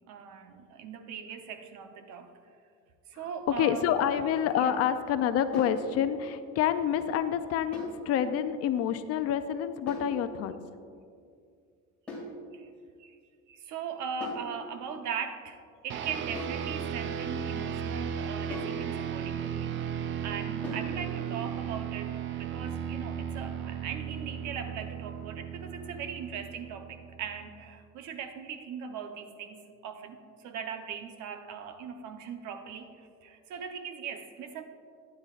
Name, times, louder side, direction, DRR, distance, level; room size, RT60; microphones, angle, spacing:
voice 1, 0.1-2.3 3.1-3.9 4.5-4.8 12.5-12.7 13.0-13.2 13.5-19.8 20.2-34.6, right 6 dB, 70° right, 7 dB, 0.9 m, -39 dB
voice 2, 3.6-10.5, left 9 dB, 55° left, 10 dB, 0.5 m, -28 dB
sound 1, 5.5-5.8 7.7-8.0 9.9-10.2 12.1-12.4 14.2-14.5 16.3-16.7 18.5-18.8 20.6-20.9, left 1 dB, 5° left, 2.4 m, -39 dB
sound 2, 15.9-27.6, right 8 dB, 40° right, 0.4 m, -35 dB
12.5 x 9.9 x 2.5 m, 2.3 s
cardioid pair, 165°, 30 cm